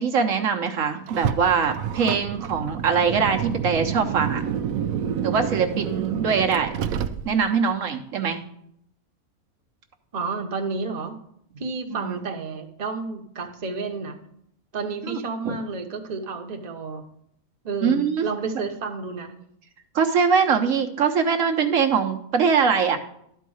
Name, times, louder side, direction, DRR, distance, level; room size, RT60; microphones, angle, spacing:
voice 1, 0.0-4.4 5.2-6.7 7.3-8.4 11.9-12.2 15.0-15.2 15.4-15.6 17.8-18.2 19.9-23.0, right 6 dB, 70° right, 4 dB, 1.2 m, -22 dB
Car, 1.1-7.6, right 8 dB, 90° right, 1.0 m, -29 dB
voice 2, 10.1-11.2 11.6-14.2 14.7-17.0 17.6-19.3, right 4 dB, 35° right, 3 dB, 1.0 m, -31 dB
12.0 x 4.6 x 6.3 m, 0.71 s
omnidirectional pair, 1.5 m